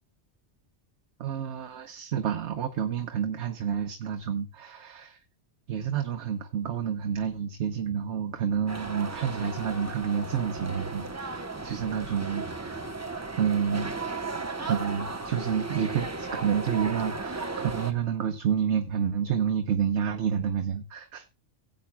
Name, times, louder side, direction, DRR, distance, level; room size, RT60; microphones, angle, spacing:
voice 1, 1.2-5.2 5.7-12.8 13.4-13.9 14.6-21.3, right 8 dB, 70° right, 1.2 m, -29 dB
sound 1, 8.7-17.9, right 3 dB, 15° right, 0.7 m, -35 dB
17.0 x 8.7 x 2.2 m
omnidirectional pair, 1.2 m